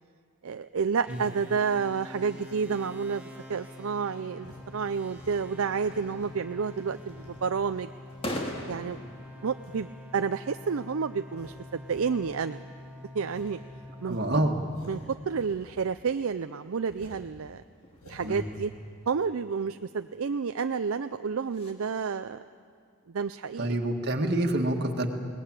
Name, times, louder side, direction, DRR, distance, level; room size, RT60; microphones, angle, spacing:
voice 1, 0.4-7.9 8.7-9.0 9.4-12.6 13.1-13.6 14.0-14.2 14.8-17.6 18.1-18.7 19.1-22.4 23.1-23.7, right 5 dB, 65° right, 10 dB, 0.5 m, -30 dB
sound 1, 1.0-15.6, left 1 dB, 5° right, 2.5 m, -46 dB
sound 2, 4.4-4.6 5.1-6.5 6.9-8.9 9.6-9.9 10.3-10.4 10.8-10.9 11.3-12.1 12.4-12.5 12.8-12.9 13.3-13.5 14.0-16.1 16.4-16.5 16.9-17.3 17.9-18.5, equal, 85° left, 6.3 m, -52 dB
sound 3, 6.6-21.7, left 1 dB, 25° left, 2.1 m, -46 dB
voice 2, 14.0-14.6 18.2-18.4 23.6-25.1, right 1 dB, 50° right, 4 dB, 1.8 m, -27 dB
22.0 x 19.0 x 8.9 m, 2.2 s
head